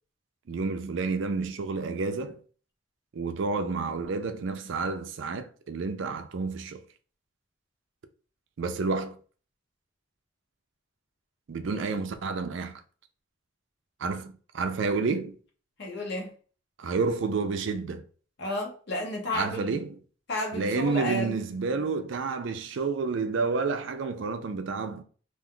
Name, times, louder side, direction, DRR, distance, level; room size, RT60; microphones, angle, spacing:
voice 1, 0.5-2.4 3.1-6.8 8.6-9.2 11.5-12.8 14.0-15.3 16.8-18.0 19.3-20.0 20.5-25.0, right 4 dB, 65° right, 0.4 m, -30 dB
voice 2, 15.8-16.3 18.4-19.8 20.3-21.4, left 1 dB, 55° left, 0.9 m, -32 dB
2.5 x 2.3 x 3.6 m
head